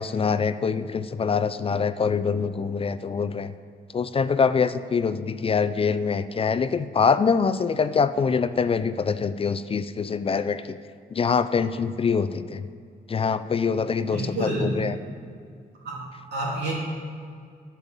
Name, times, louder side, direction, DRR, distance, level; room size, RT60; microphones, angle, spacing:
voice 1, 0.0-3.5 3.9-10.8 11.1-12.6 13.1-14.9, left 5 dB, 35° left, 12 dB, 0.4 m, -24 dB
voice 2, 14.0-14.7 15.8-16.0 16.3-16.7, right 2 dB, 85° right, -4 dB, 3.3 m, -28 dB
12.0 x 7.0 x 7.3 m, 2.2 s
wide cardioid pair, 145°, 17 cm